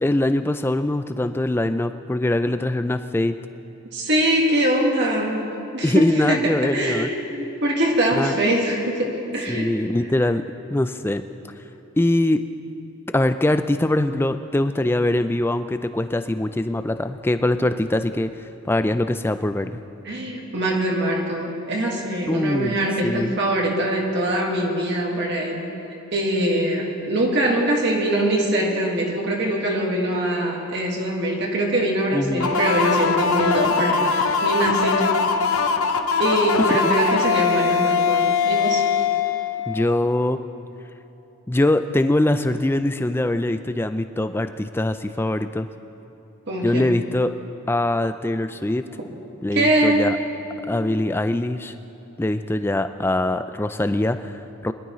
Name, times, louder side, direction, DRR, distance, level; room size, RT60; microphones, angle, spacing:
voice 1, 0.0-3.4 5.8-7.1 8.2-8.3 9.5-10.4 10.7-11.2 12.0-12.4 13.1-19.8 22.3-22.8 23.0-23.3 32.1-32.5 39.7-40.4 41.5-45.7 46.6-47.3 47.7-48.8 49.4-50.2 50.7-51.7 52.2-54.7, left 1 dB, 10° left, 10 dB, 0.3 m, -22 dB
voice 2, 3.9-5.4 5.7-9.7 20.0-25.7 26.1-35.2 36.2-38.8 46.5-47.0 49.5-50.1, right 1 dB, 50° right, -1 dB, 1.7 m, -23 dB
sound 1, 32.4-40.0, left 5 dB, 75° left, 0.7 m, -21 dB
22.0 x 12.0 x 3.1 m, 3.0 s
head